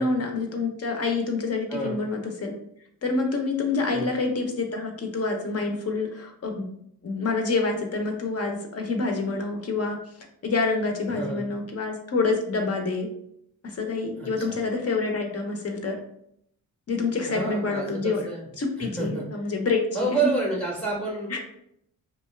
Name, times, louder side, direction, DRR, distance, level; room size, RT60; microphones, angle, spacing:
voice 1, 0.0-2.5 3.0-6.7 7.0-10.0 10.4-13.1 13.6-16.0 16.9-18.2 18.6-20.3 21.3-21.4, left 3 dB, 40° left, 3 dB, 0.6 m, -27 dB
voice 2, 1.7-2.0 3.9-4.1 11.2-11.4 14.2-14.6 17.3-18.5 18.8-19.5 19.9-21.4, right 3 dB, ahead, -4 dB, 0.7 m, -29 dB
2.5 x 2.3 x 3.1 m, 0.73 s
cardioid pair, 85°, 37 cm